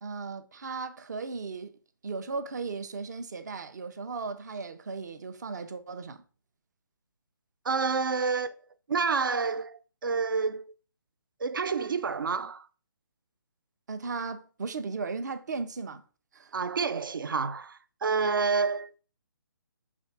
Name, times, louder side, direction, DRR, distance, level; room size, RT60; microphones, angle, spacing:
voice 1, 0.0-1.7 2.0-6.2 13.9-16.0 16.3-16.6, right 4 dB, 50° right, 0.9 m, -36 dB
voice 2, 7.6-8.5 8.9-10.6 11.4-12.7 16.5-19.0, right 5 dB, 70° right, 0.6 m, -28 dB
6.2 x 3.6 x 5.9 m
figure-of-eight pair, 145°, 12 cm